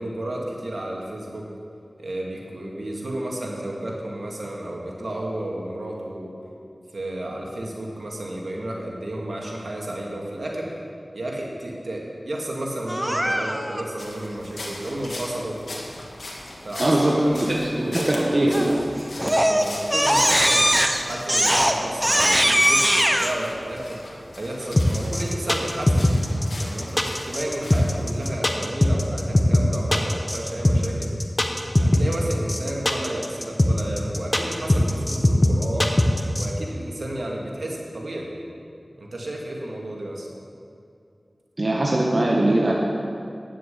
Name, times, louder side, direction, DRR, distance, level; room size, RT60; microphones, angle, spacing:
voice 1, 0.0-1.5 2.0-6.3 6.9-10.7 11.1-15.6 16.6-18.7 19.1-20.7 21.0-24.0 24.4-26.0 26.6-31.1 31.8-35.9 36.4-38.3 39.0-40.3, right 1 dB, 75° right, -2 dB, 2.0 m, -32 dB
Crying sobbing, 12.9-13.8 18.5-18.8 19.2-23.3, equal, 10° right, 0.9 m, -20 dB
sound 1, 14.0-28.3, left 1 dB, 90° left, 1.7 m, -39 dB
voice 2, 16.8-18.8 41.6-42.7, right 1 dB, 50° right, -3 dB, 1.2 m, -21 dB
sound 2, 24.8-36.5, left 1 dB, 30° left, 1.1 m, -20 dB
9.5 x 7.6 x 8.1 m, 2.5 s
wide cardioid pair, 50°, 0 cm